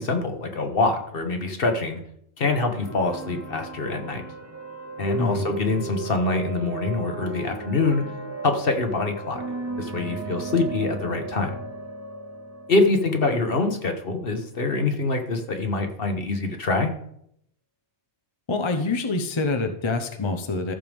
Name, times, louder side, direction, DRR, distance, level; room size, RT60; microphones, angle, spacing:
voice 1, 0.0-2.0 2.4-4.2 5.0-8.0 8.4-9.4 9.8-11.6 12.7-16.9, left 3 dB, 55° left, 5 dB, 1.4 m, -25 dB
sound 1, 2.7-14.4, right 4 dB, 20° right, 0.6 m, -35 dB
voice 2, 18.5-20.7, left 3 dB, 30° left, 6 dB, 0.7 m, -26 dB
14.0 x 6.8 x 3.5 m, 0.71 s
omnidirectional pair, 1.2 m